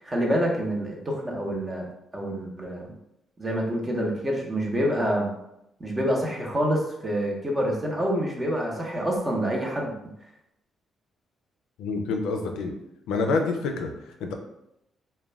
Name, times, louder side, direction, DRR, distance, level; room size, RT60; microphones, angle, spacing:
voice 1, 0.0-1.9 2.1-2.9 3.4-5.3 5.8-9.9, equal, 25° right, -1 dB, 0.7 m, -27 dB
voice 2, 11.8-12.7 13.1-14.3, left 3 dB, 90° left, 4 dB, 0.4 m, -27 dB
2.3 x 2.2 x 3.2 m, 0.82 s
cardioid pair, 90°, 0 cm